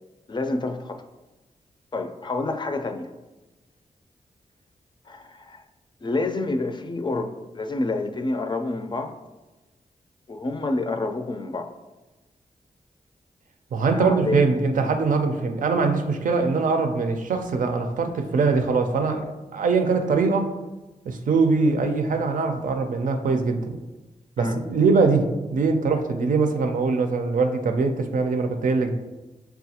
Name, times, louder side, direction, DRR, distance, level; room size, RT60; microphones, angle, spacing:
voice 1, 0.3-1.0 1.9-3.1 5.1-5.6 6.0-9.2 10.3-11.7 13.9-14.4 24.4-24.6, left 2 dB, 35° left, 7 dB, 0.4 m, -28 dB
voice 2, 13.7-20.5 21.1-23.8 24.4-29.0, right 4 dB, 75° right, 6 dB, 0.5 m, -22 dB
6.5 x 2.3 x 2.8 m, 1.1 s
cardioid pair, 70°, 14 cm